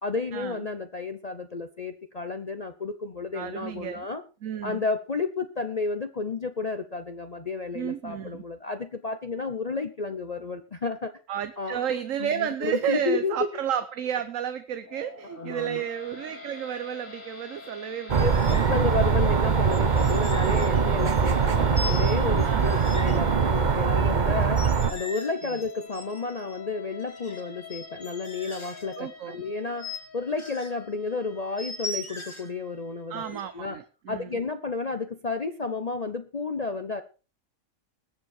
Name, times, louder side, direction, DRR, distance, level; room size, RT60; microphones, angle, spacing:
voice 1, 0.0-4.2 4.6-11.1 11.6-11.9 12.2-13.5 15.4-15.8 18.2-33.8 34.1-37.0, left 4 dB, 35° left, 8 dB, 0.7 m, -31 dB
voice 2, 3.3-4.1 4.4-4.8 7.7-8.4 11.3-18.8 22.4-22.8 29.0-29.4 33.1-34.4, right 9 dB, 70° right, 11 dB, 1.2 m, -32 dB
sound 1, 14.8-33.1, left 4 dB, 65° left, 3.0 m, -45 dB
sound 2, 18.1-18.9 19.7-21.4 21.8-23.2 24.4-26.6 27.0-29.0 29.8-30.0 30.4-30.7 31.6-32.5 33.2-33.5, left 2 dB, 20° left, 2.0 m, -40 dB
sound 3, 18.1-24.9, right 6 dB, 40° right, 0.9 m, -22 dB
20.5 x 7.5 x 4.3 m, 0.33 s
omnidirectional pair, 1.4 m